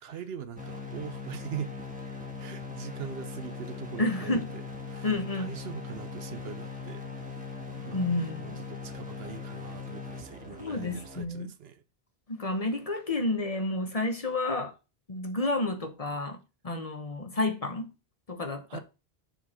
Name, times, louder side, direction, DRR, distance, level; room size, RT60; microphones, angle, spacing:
voice 1, 0.0-1.8 2.4-4.3 4.9-7.4 7.9-11.8 18.7-18.8, right 8 dB, 75° right, 0.9 m, -42 dB
sound 1, 0.6-11.2, left 4 dB, 10° right, 1.4 m, -40 dB
voice 2, 4.0-4.5 5.0-5.5 7.7-8.6 10.6-11.5 12.3-14.7 15.1-16.4 16.6-17.9 18.3-18.8, left 2 dB, 35° left, 1.0 m, -30 dB
7.1 x 4.3 x 4.3 m
omnidirectional pair, 1.1 m